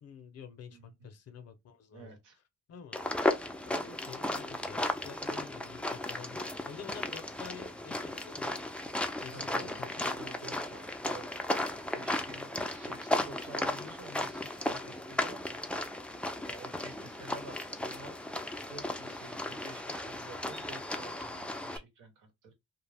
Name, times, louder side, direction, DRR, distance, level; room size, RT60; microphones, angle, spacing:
voice 1, 0.0-2.2 2.7-3.0 3.7-6.4 6.7-8.6 9.2-10.1, left 7 dB, 55° left, 0.6 m, -48 dB
voice 2, 0.7-1.1 1.9-2.4 9.3-15.6 16.1-22.5, right 3 dB, 90° right, 1.0 m, -50 dB
sound 1, 2.9-21.8, left 1 dB, 5° left, 0.3 m, -35 dB
2.3 x 2.1 x 3.3 m
cardioid pair, 90°, 30 cm